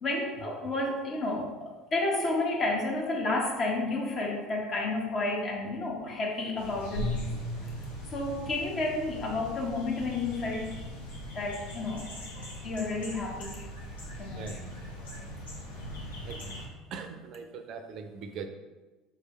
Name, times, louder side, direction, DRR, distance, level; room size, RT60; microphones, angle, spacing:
voice 1, 0.0-7.3 8.1-10.7 11.3-12.1 12.6-13.7 14.2-14.6, left 2 dB, 40° left, -1 dB, 1.0 m, -31 dB
sound 1, 6.6-16.7, equal, 80° left, 0.9 m, -39 dB
voice 2, 14.3-14.6 16.2-16.5 16.9-18.5, right 5 dB, 50° right, 7 dB, 0.4 m, -41 dB
4.7 x 3.2 x 3.1 m, 1.2 s
figure-of-eight pair, 65°, 0 cm